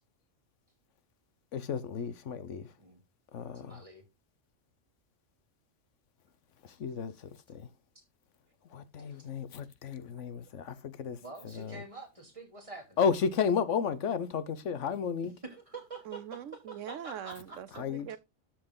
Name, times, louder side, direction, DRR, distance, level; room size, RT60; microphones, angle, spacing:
voice 1, 1.5-2.7 3.3-3.8 6.6-7.7 8.7-11.2 11.4-11.8 13.0-15.3 17.8-18.1, left 6 dB, 75° left, 1.2 m, -33 dB
voice 2, 3.5-4.0 11.2-13.0 15.4-16.2 16.7-17.6, right 3 dB, 25° right, 2.8 m, -46 dB
voice 3, 16.0-18.2, right 10 dB, 85° right, 1.1 m, -42 dB
12.5 x 4.5 x 3.8 m
omnidirectional pair, 1.3 m